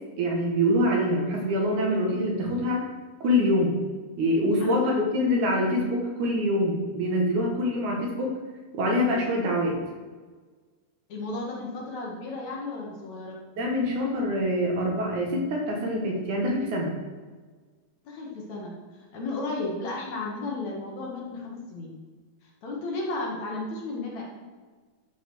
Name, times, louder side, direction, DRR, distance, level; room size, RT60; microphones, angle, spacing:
voice 1, 0.2-2.8 3.2-3.8 4.2-8.3 8.7-9.8 13.6-17.0, equal, 65° right, 0 dB, 3.0 m, -25 dB
voice 2, 11.1-13.4 18.0-22.0 22.4-24.3, left 2 dB, 60° left, -2 dB, 2.8 m, -34 dB
12.0 x 5.5 x 6.3 m, 1.4 s
omnidirectional pair, 4.0 m